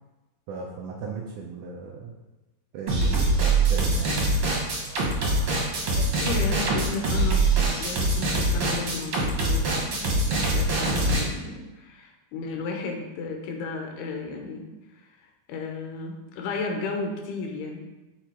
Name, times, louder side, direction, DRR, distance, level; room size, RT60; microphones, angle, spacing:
voice 1, 0.5-2.1 2.7-4.2 10.3-10.5, right 4 dB, 90° right, 0 dB, 1.7 m, -36 dB
sound 1, 2.9-11.2, right 2 dB, 55° right, 1.7 m, -23 dB
voice 2, 4.9-14.7 15.0-17.8, left 4 dB, 85° left, 2 dB, 3.0 m, -34 dB
6.5 x 5.2 x 4.4 m, 1.1 s
omnidirectional pair, 4.5 m